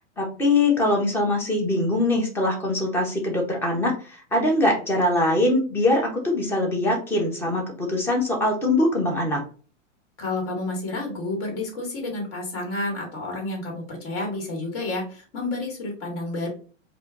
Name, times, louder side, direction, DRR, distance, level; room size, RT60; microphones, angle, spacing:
voice 1, 0.2-9.4, left 2 dB, 5° left, 1 dB, 0.5 m, -22 dB
voice 2, 10.2-16.5, left 2 dB, 50° left, 1 dB, 1.8 m, -30 dB
4.3 x 2.5 x 2.3 m, 0.39 s
hypercardioid pair, 140°, 38 cm